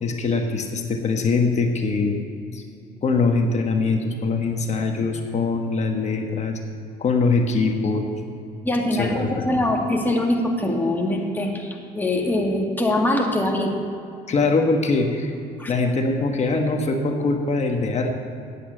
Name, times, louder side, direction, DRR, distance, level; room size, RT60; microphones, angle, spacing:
voice 1, 0.0-2.2 2.5-2.6 3.0-6.6 7.0-8.1 8.9-9.5 14.3-15.3 15.7-18.2, left 3 dB, 40° left, 4 dB, 1.3 m, -22 dB
voice 2, 8.6-13.7 15.6-15.7, left 1 dB, 10° left, 0 dB, 1.8 m, -23 dB
8.6 x 7.7 x 8.8 m, 2.5 s
cardioid pair, 110°, 17 cm